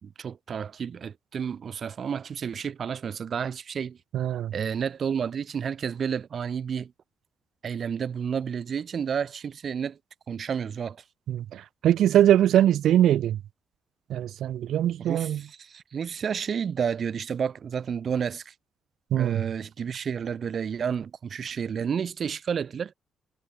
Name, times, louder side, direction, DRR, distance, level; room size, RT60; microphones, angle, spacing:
voice 1, 0.0-4.0 4.5-6.9 7.6-10.0 10.3-11.0 15.0-18.5 19.1-22.9, right 7 dB, 40° right, 3.3 m, -31 dB
voice 2, 4.1-4.5 11.3-13.4 14.1-15.4 19.1-19.4, right 11 dB, 70° right, 0.6 m, -22 dB
cardioid pair, 170°, 0 cm